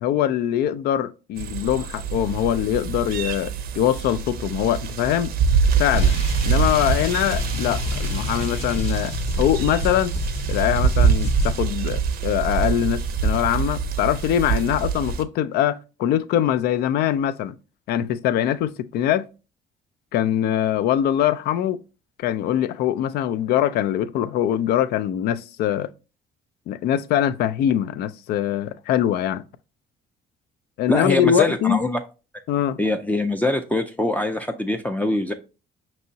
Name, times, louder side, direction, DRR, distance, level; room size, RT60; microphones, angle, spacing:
voice 1, 0.0-5.3 5.8-10.1 10.5-17.5 17.9-19.3 20.1-21.8 22.2-25.9 26.7-29.4 30.8-31.8 32.5-32.8, left 11 dB, 70° left, 0.4 m, -23 dB
sound 1, 1.4-15.2, right 6 dB, 60° right, 0.5 m, -24 dB
sound 2, 5.9-11.6, left 1 dB, 40° left, 0.7 m, -28 dB
voice 2, 30.9-32.0 32.8-35.3, left 1 dB, 10° left, 0.4 m, -23 dB
5.4 x 3.0 x 2.7 m
cardioid pair, 110°, 17 cm